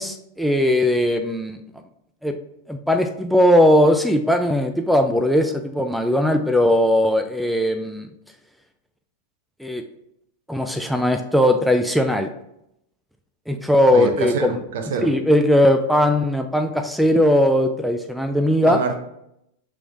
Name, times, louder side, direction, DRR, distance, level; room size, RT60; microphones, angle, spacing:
voice 1, 0.0-1.6 2.2-2.4 2.7-8.1 9.6-9.8 10.5-12.3 13.5-14.6 15.0-18.8, left 1 dB, ahead, 6 dB, 0.3 m, -19 dB
voice 2, 13.9-15.1 18.7-19.0, right 5 dB, 55° right, 6 dB, 0.6 m, -25 dB
6.0 x 3.3 x 2.4 m, 0.79 s
figure-of-eight pair, 90°, 0 cm